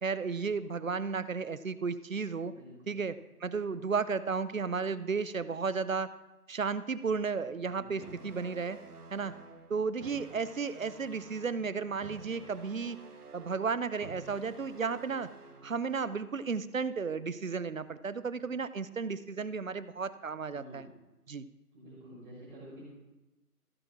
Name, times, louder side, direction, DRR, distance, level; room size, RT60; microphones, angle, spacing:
voice 1, 0.0-2.5 2.9-6.1 6.5-8.8 9.1-9.3 9.7-13.0 13.3-15.3 15.6-20.9 21.3-21.5, right 5 dB, 55° right, 15 dB, 0.7 m, -33 dB
voice 2, 2.5-3.0 7.6-8.1 20.5-20.9 21.7-22.8, equal, 5° right, -14 dB, 3.8 m, -50 dB
sound 1, 8.0-16.0, right 4 dB, 75° right, 1.4 m, -51 dB
14.5 x 7.4 x 6.1 m, 1.0 s
figure-of-eight pair, 170°, 47 cm